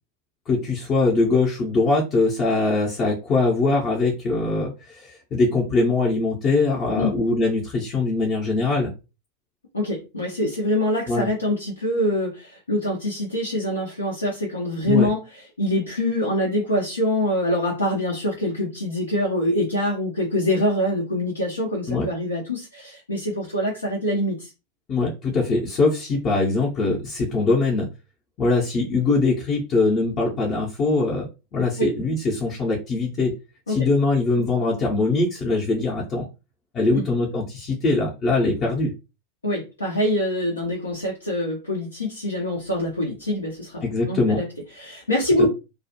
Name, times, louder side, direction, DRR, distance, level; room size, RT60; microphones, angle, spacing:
voice 1, 0.5-8.9 11.1-11.3 14.9-15.1 21.9-22.1 24.9-27.9 28.4-33.3 33.7-36.2 36.7-38.9 43.8-44.4, left 3 dB, 30° left, -4 dB, 0.7 m, -22 dB
voice 2, 9.7-24.5 33.7-33.8 36.9-37.0 39.4-44.5 44.8-45.5, left 1 dB, 80° left, -3 dB, 0.6 m, -24 dB
2.3 x 2.1 x 2.7 m, 0.28 s
figure-of-eight pair, 90°, 0 cm